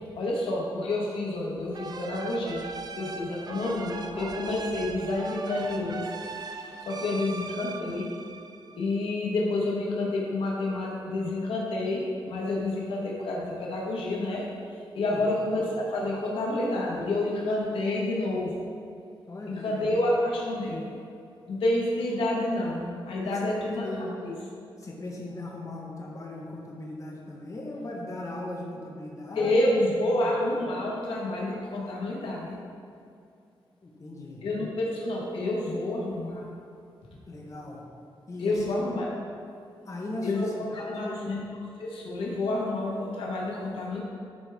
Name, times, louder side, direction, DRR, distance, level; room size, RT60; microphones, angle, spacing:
voice 1, 0.1-2.7 2.9-6.0 6.9-8.1 8.8-14.5 14.9-18.6 19.5-20.8 21.5-23.9 24.2-24.3 29.3-32.6 34.4-36.4 38.4-39.1 40.2-41.4 41.8-44.0, left 2 dB, 90° left, -3 dB, 1.3 m, -29 dB
sound 1, 1.3-7.0, left 2 dB, 70° left, 1.7 m, -44 dB
sound 2, 1.7-9.2, right 4 dB, 50° right, 0.4 m, -40 dB
voice 2, 19.3-20.0 23.2-24.2 24.8-29.7 30.2-30.4 33.8-34.4 37.3-37.8 38.3-38.7 39.8-41.2, left 2 dB, 35° left, -2 dB, 1.2 m, -38 dB
9.8 x 4.7 x 3.5 m, 2.5 s
cardioid pair, 100°, 9 cm